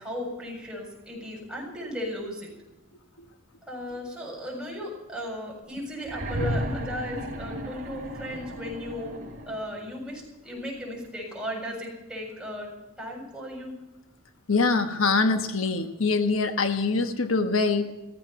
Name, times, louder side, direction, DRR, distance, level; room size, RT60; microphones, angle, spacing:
voice 1, 0.0-2.5 3.7-9.2 9.5-12.7 13.0-13.7, equal, 5° right, -3 dB, 7.3 m, -36 dB
sound 1, 6.0-9.8 11.0-11.1, equal, 45° right, 3.7 m, -34 dB
voice 2, 14.5-17.9, left 4 dB, 85° left, 7 dB, 1.2 m, -24 dB
15.5 x 15.0 x 5.8 m, 1.0 s
head